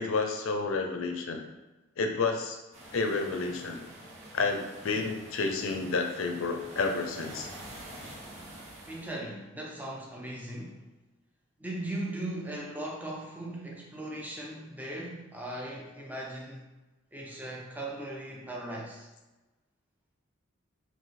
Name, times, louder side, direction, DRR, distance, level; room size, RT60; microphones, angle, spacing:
voice 1, 0.0-1.4 2.0-2.6 2.9-3.8 4.3-7.5, left 4 dB, 75° left, 4 dB, 0.5 m, -30 dB
sound 1, 2.7-9.1, right 1 dB, 75° right, 1.3 m, -47 dB
voice 2, 8.9-10.8 11.6-16.7 17.1-19.1, right 1 dB, 10° right, -2 dB, 0.5 m, -38 dB
4.1 x 2.6 x 3.9 m, 1.1 s
head